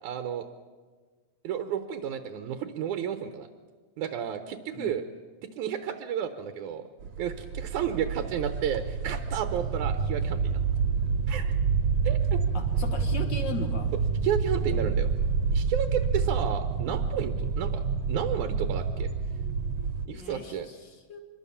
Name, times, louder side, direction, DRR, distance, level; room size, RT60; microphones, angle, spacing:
voice 1, 0.0-0.5 1.4-3.5 4.0-5.0 5.6-6.8 7.2-10.6 11.3-11.5 12.0-12.2 14.2-15.1 15.5-17.8 18.1-19.1 20.1-20.7, right 8 dB, 80° right, 8 dB, 2.5 m, -32 dB
sound 1, 7.0-20.1, right 5 dB, 60° right, 2.1 m, -28 dB
voice 2, 12.5-13.9 20.1-21.2, left 3 dB, 40° left, 6 dB, 2.3 m, -37 dB
25.5 x 22.5 x 7.2 m, 1.4 s
omnidirectional pair, 3.6 m